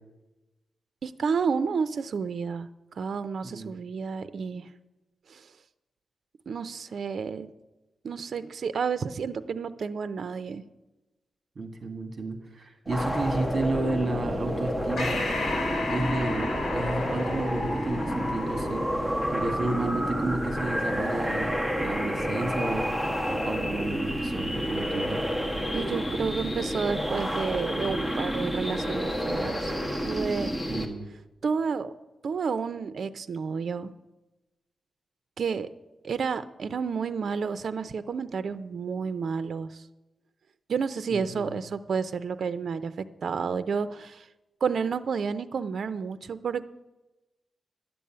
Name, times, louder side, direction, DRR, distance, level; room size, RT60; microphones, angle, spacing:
voice 1, 1.0-2.7 2.9-4.7 5.3-5.5 6.5-7.5 8.0-10.6 25.7-29.7 30.0-30.5 31.4-31.9 32.2-33.9 35.4-35.7 36.0-39.8 40.7-42.9 43.2-44.3 44.6-46.7, right 5 dB, 60° right, 12 dB, 0.5 m, -30 dB
voice 2, 11.6-15.2 15.8-18.8 19.3-23.0 23.3-25.2 30.7-31.1 41.1-41.5, right 2 dB, 45° right, 6 dB, 1.9 m, -32 dB
sound 1, 12.9-30.9, equal, 10° left, 1.3 m, -29 dB
Breathing, 15.0-19.8, left 3 dB, 65° left, 2.5 m, -34 dB
11.0 x 7.0 x 8.7 m, 1.1 s
wide cardioid pair, 130°, 0 cm